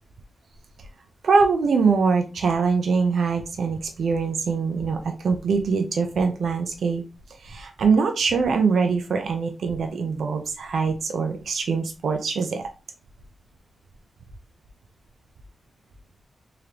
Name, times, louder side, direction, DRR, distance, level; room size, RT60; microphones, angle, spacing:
voice 1, 1.2-7.0 7.4-12.6, right 5 dB, 80° right, 5 dB, 0.6 m, -23 dB
3.7 x 3.3 x 2.9 m, 0.31 s
cardioid pair, 55°, 0 cm